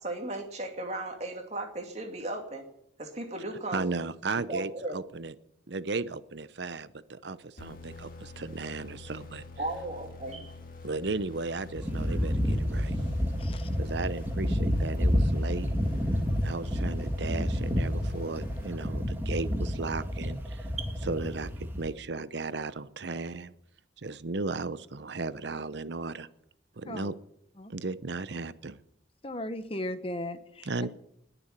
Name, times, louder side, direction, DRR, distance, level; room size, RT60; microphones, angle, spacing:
voice 1, 0.0-2.6 3.0-3.9 4.3-5.0 9.6-10.5 20.8-20.9, right 2 dB, 35° right, 2.4 m, -36 dB
voice 2, 3.7-5.3 5.7-9.4 10.8-13.0 13.8-15.7 16.4-20.7 21.1-23.5 24.0-26.3 26.8-27.1 27.7-28.8 30.6-30.9, right 3 dB, 70° right, 0.7 m, -35 dB
sound 1, 7.6-19.3, left 3 dB, 50° left, 1.8 m, -46 dB
sound 2, 11.7-21.9, equal, 10° right, 1.7 m, -29 dB
voice 3, 29.2-30.7, left 1 dB, 30° left, 1.1 m, -36 dB
20.5 x 7.0 x 9.8 m
head